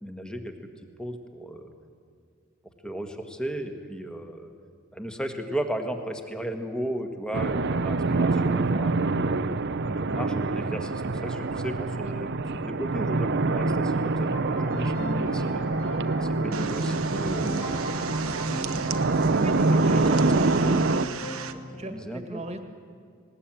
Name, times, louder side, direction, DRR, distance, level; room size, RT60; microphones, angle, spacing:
voice 1, 0.0-0.5 1.0-1.7 2.8-4.5 4.9-9.4 10.0-15.6 16.2-17.8 19.7-20.1 21.7-22.4, right 1 dB, 5° left, 5 dB, 1.6 m, -35 dB
sound 1, 7.3-21.1, right 3 dB, 55° right, 0.7 m, -25 dB
Piano, 14.3-21.6, equal, 70° left, 3.9 m, -37 dB
sound 2, 16.5-21.5, right 7 dB, 80° right, 1.0 m, -38 dB
voice 2, 19.3-20.8 21.8-22.6, right 1 dB, 30° right, 6 dB, 1.8 m, -37 dB
19.5 x 19.5 x 9.0 m, 2.3 s
head